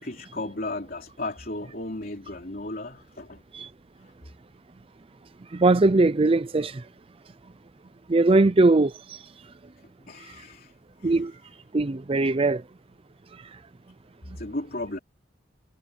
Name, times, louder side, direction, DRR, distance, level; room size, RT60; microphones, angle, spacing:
voice 1, 0.0-3.4 4.0-4.1 10.1-10.7 11.0-11.2 14.4-15.0, left 2 dB, 50° left, 3.4 m, -35 dB
voice 2, 5.5-6.8 8.1-9.2 11.0-11.3 11.7-12.6, right 2 dB, 30° right, 0.5 m, -20 dB
head